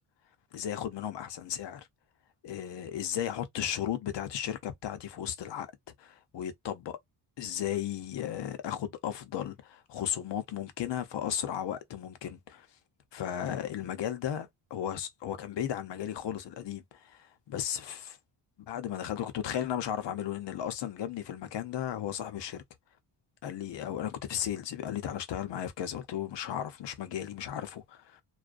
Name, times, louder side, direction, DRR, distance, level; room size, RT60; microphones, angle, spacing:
voice 1, 0.5-1.9 2.4-5.7 6.0-7.0 7.4-12.7 13.1-18.2 18.7-22.6 23.4-28.2, left 10 dB, 60° left, 0.7 m, -35 dB
2.4 x 2.1 x 2.4 m
cardioid pair, 95°, 49 cm